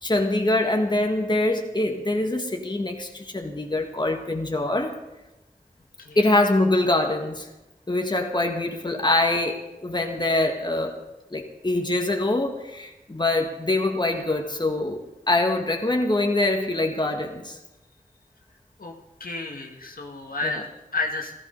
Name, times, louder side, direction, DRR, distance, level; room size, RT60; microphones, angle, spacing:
voice 1, 0.0-4.9 6.1-7.5 7.9-10.9 11.3-17.6 20.4-20.6, left 2 dB, 30° left, 3 dB, 1.7 m, -24 dB
voice 2, 19.2-21.3, left 3 dB, 80° left, 1 dB, 1.9 m, -31 dB
14.5 x 14.5 x 5.4 m, 0.98 s
wide cardioid pair, 60°, 15 cm